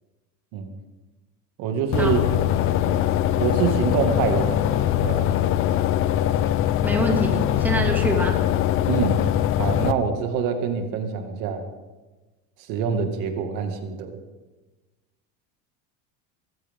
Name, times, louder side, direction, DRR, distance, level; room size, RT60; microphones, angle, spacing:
voice 1, 1.6-2.2 2.9-3.0 3.4-4.6 5.0-5.3 8.9-9.2 9.6-11.6 12.7-14.1, right 7 dB, 60° right, 5 dB, 2.1 m, -25 dB
sound 1, 1.9-9.9, left 11 dB, 35° left, 0.6 m, -22 dB
voice 2, 6.8-8.4, right 1 dB, 5° right, 1 dB, 2.1 m, -25 dB
23.0 x 15.0 x 3.7 m, 1.2 s
cardioid pair, 150°, 36 cm